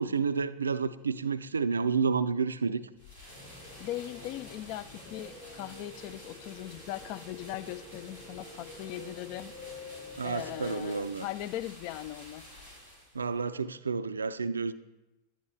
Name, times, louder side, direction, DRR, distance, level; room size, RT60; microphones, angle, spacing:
voice 1, 0.0-2.8 10.2-11.2 13.1-14.7, right 5 dB, 75° right, 0.4 m, -30 dB
sound 1, 2.9-13.4, equal, 85° left, 4.2 m, -51 dB
sound 2, 3.3-11.3, left 2 dB, 65° left, 4.0 m, -49 dB
voice 2, 3.8-9.5 10.2-12.4, left 14 dB, 45° left, 0.3 m, -39 dB
11.0 x 10.0 x 3.2 m
figure-of-eight pair, 90°, 0 cm